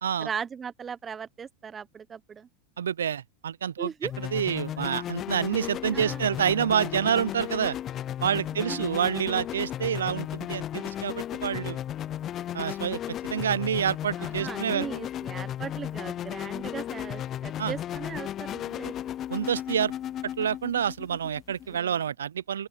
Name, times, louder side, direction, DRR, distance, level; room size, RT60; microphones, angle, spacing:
voice 1, 0.2-2.5 3.8-4.1 5.9-6.2 8.5-8.9 14.2-18.9 21.7-22.0, right 6 dB, 25° right, 1.0 m, -38 dB
voice 2, 2.8-3.9 4.2-7.8 8.2-11.8 12.5-13.0 13.3-14.9 17.6-17.7 19.3-19.9 20.2-22.7, right 8 dB, 85° right, 0.6 m, -28 dB
sound 1, 4.0-21.8, left 11 dB, 40° left, 0.4 m, -35 dB
open air
hypercardioid pair, 95°, 0 cm